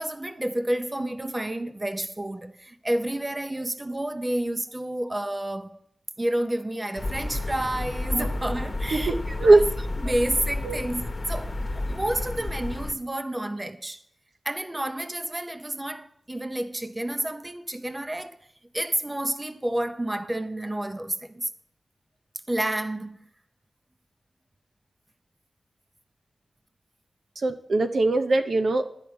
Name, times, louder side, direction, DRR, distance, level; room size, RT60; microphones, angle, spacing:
voice 1, 0.0-5.8 6.2-9.6 10.0-14.0 14.4-18.4 18.7-21.5 22.5-23.2, right 1 dB, 20° right, 0.6 m, -30 dB
sound 1, 7.0-12.9, left 2 dB, 45° left, 1.1 m, -31 dB
voice 2, 27.4-28.8, right 2 dB, 70° right, 0.8 m, -20 dB
9.9 x 5.2 x 7.8 m
cardioid pair, 65°, 0 cm